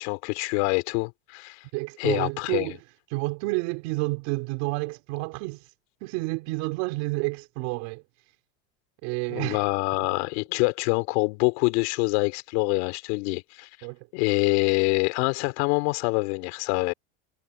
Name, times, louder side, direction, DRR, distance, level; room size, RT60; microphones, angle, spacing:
voice 1, 0.0-1.6 2.0-2.8 9.3-13.7 14.1-16.9, left 28 dB, 75° left, 3.4 m, -25 dB
voice 2, 1.7-2.8 3.1-5.7 6.0-8.0 9.0-9.6 13.8-14.0, right 25 dB, 70° right, 3.4 m, -30 dB
cardioid pair, 150°, 33 cm